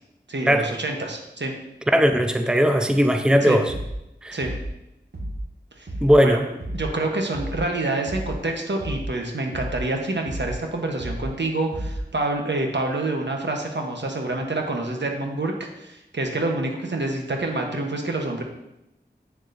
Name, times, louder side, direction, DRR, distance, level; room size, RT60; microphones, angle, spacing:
voice 1, 0.3-1.5 3.5-3.6 4.3-4.5 5.8-5.9 6.2-6.4 6.7-15.5 15.8-18.4, right 2 dB, 85° right, 2 dB, 1.0 m, -27 dB
voice 2, 1.9-3.7 4.2-4.4 6.0-6.5, equal, 5° right, 6 dB, 0.6 m, -18 dB
sound 1, 3.7-4.1 4.4-4.8 5.1-5.5 5.9-6.2 6.6-7.0 7.3-7.7 8.1-8.4 8.8-9.2 9.5-9.9 10.3-10.6 11.0-11.4 11.7-12.1, right 1 dB, 65° right, 1.7 m, -32 dB
8.4 x 6.7 x 2.6 m, 0.90 s
wide cardioid pair, 50°, 18 cm